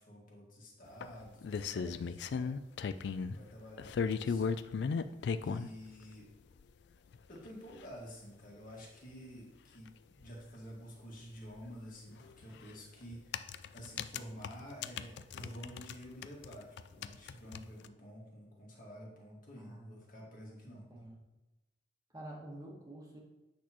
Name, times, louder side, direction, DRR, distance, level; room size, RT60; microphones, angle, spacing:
voice 1, 0.0-2.5 2.9-4.5 5.4-6.3 7.3-20.9, equal, 50° left, -3 dB, 1.9 m, -50 dB
sound 1, 1.0-3.3 3.8-5.7 6.6-6.7 7.1-7.2 7.5-7.6 7.8-7.9 9.9-10.0 10.2-10.3 12.3-12.4 13.1-16.0 16.2-17.9, left 5 dB, 65° left, 0.3 m, -36 dB
voice 2, 19.5-20.0 20.6-21.1 22.1-23.2, right 1 dB, 20° right, -3 dB, 1.5 m, -49 dB
8.4 x 6.0 x 3.0 m, 1.1 s
head